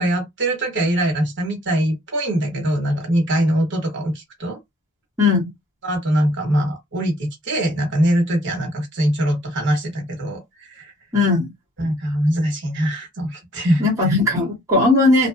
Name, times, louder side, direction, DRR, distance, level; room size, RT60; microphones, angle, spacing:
voice 1, 0.0-4.6 5.8-10.9 11.8-14.2, right 1 dB, 55° right, 1.1 m, -22 dB
voice 2, 5.2-5.5 11.1-11.5 13.8-15.3, left 3 dB, 15° right, 1.0 m, -17 dB
2.6 x 2.2 x 2.4 m
head